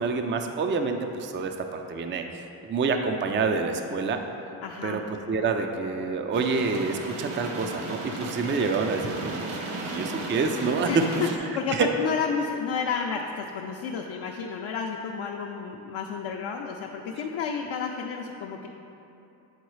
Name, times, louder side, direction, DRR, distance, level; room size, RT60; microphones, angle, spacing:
voice 1, 0.0-4.2 4.8-9.5 9.8-10.9 11.2-11.3 11.7-11.9, right 4 dB, 25° right, 5 dB, 0.4 m, -28 dB
voice 2, 4.6-5.0 10.9-18.7, left 6 dB, 65° left, 0 dB, 0.6 m, -31 dB
sound 1, 6.3-11.4, right 2 dB, 85° right, 0.8 m, -35 dB
8.2 x 3.9 x 3.1 m, 2.8 s
cardioid pair, 55°, 50 cm